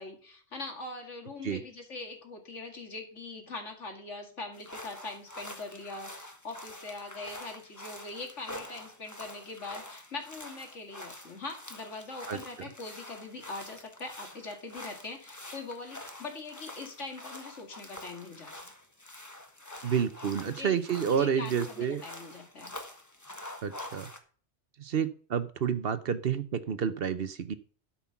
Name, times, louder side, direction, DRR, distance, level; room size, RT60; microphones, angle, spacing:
voice 1, 0.0-18.7 20.4-20.8 21.1-22.7, left 3 dB, 85° left, 3 dB, 2.6 m, -42 dB
sound 1, 4.5-24.2, left 1 dB, 15° left, 1.3 m, -46 dB
voice 2, 19.8-22.0 23.6-24.1 24.8-27.5, right 7 dB, 60° right, 13 dB, 1.0 m, -29 dB
12.5 x 5.8 x 5.8 m, 0.43 s
omnidirectional pair, 1.2 m